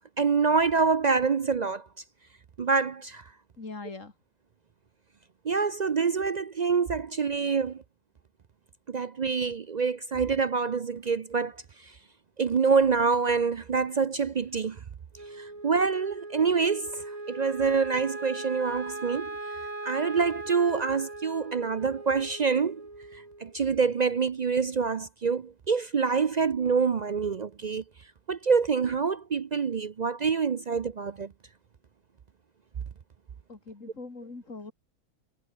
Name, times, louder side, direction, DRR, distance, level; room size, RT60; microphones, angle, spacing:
voice 1, 0.2-1.9 2.6-3.2 5.4-7.8 8.9-11.6 11.8-11.9 12.4-14.8 15.3-19.4 19.8-22.8 23.1-27.8 28.3-31.3, right 5 dB, 50° right, 0.5 m, -26 dB
voice 2, 3.6-4.1 33.5-34.7, left 3 dB, 65° left, 3.9 m, -41 dB
Wind instrument woodwind instrument, 15.1-23.6, right 2 dB, 85° right, 5.7 m, -39 dB
omnidirectional pair, 1.4 m